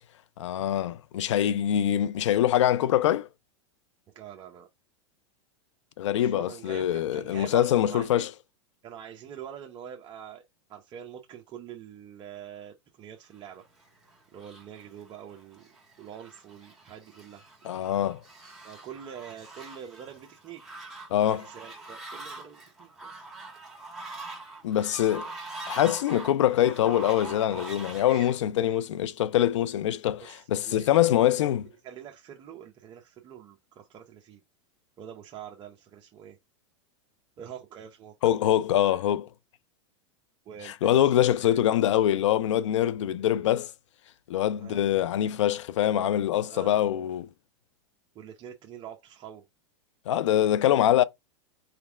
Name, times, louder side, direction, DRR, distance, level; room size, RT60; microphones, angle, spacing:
voice 1, 0.4-3.3 6.0-8.3 17.6-18.2 21.1-21.5 24.6-25.3 25.7-31.7 38.2-39.3 40.6-43.7 44.3-47.3 50.1-51.0, left 11 dB, 80° left, 0.5 m, -24 dB
voice 2, 4.1-4.7 6.1-8.3 8.8-10.4 10.7-13.6 14.3-15.7 16.0-17.4 18.6-20.6 21.3-23.2 30.2-31.2 31.8-34.4 35.0-36.4 37.4-38.2 38.8-39.0 40.5-41.6 44.6-44.8 46.5-46.8 48.1-49.4, right 9 dB, 30° right, 0.7 m, -45 dB
Fowl, 13.6-28.4, right 2 dB, ahead, 2.2 m, -44 dB
4.0 x 3.3 x 3.5 m
hypercardioid pair, 120°, 15 cm